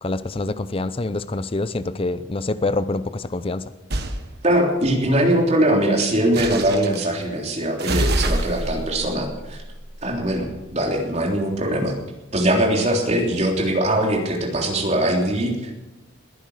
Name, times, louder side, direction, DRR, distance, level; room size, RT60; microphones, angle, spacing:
voice 1, 0.0-3.7, left 2 dB, 25° left, 13 dB, 0.5 m, -26 dB
sound 1, 3.9-4.2 6.3-7.1 7.8-10.4, right 1 dB, 50° right, 1.6 m, -26 dB
voice 2, 4.4-9.6 10.0-12.0 12.3-15.7, right 1 dB, 30° right, 1 dB, 3.4 m, -21 dB
20.5 x 10.5 x 6.5 m, 1.1 s
head